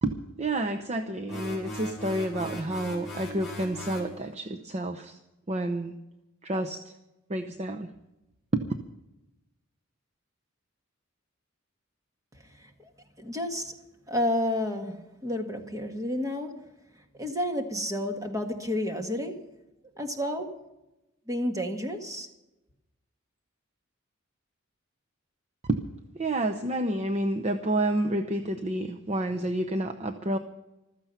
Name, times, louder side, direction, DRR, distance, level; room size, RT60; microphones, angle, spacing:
voice 1, 0.0-5.2 5.5-6.0 6.4-6.9 7.3-7.9 8.5-8.7 25.7-25.9 26.1-30.4, right 1 dB, 35° right, 6 dB, 0.8 m, -29 dB
sound 1, 1.3-4.1, left 1 dB, ahead, 6.1 m, -39 dB
voice 2, 13.2-13.8 14.1-16.5 17.2-19.4 20.0-20.5 21.3-22.3, left 1 dB, 15° right, 4 dB, 1.8 m, -30 dB
15.0 x 13.5 x 5.8 m, 0.94 s
head